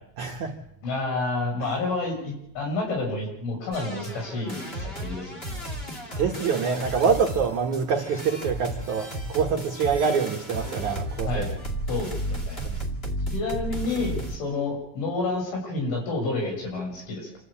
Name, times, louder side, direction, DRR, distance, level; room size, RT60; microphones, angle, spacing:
voice 1, 0.2-0.6 6.2-11.5 12.6-12.9, right 6 dB, 75° right, 3 dB, 1.7 m, -25 dB
voice 2, 0.8-5.6 11.3-11.5 11.9-12.6 13.3-17.3, left 3 dB, 70° left, 0 dB, 8.9 m, -29 dB
sound 1, 3.7-14.4, right 1 dB, 35° left, 1.0 m, -33 dB
27.5 x 13.5 x 8.8 m, 0.77 s
omnidirectional pair, 5.7 m